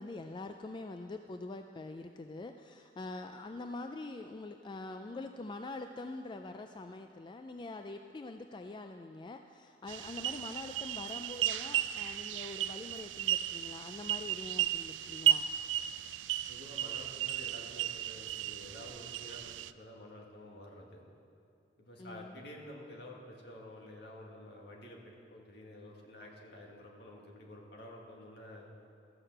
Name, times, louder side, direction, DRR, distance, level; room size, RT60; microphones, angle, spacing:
voice 1, 0.0-15.5 22.0-22.3, left 2 dB, 25° left, 6 dB, 0.3 m, -44 dB
sound 1, 9.9-19.7, right 11 dB, 85° right, 0.3 m, -34 dB
voice 2, 16.5-21.0 21.8-28.7, left 1 dB, 65° left, -1 dB, 2.0 m, -50 dB
14.0 x 6.6 x 7.7 m, 2.4 s
head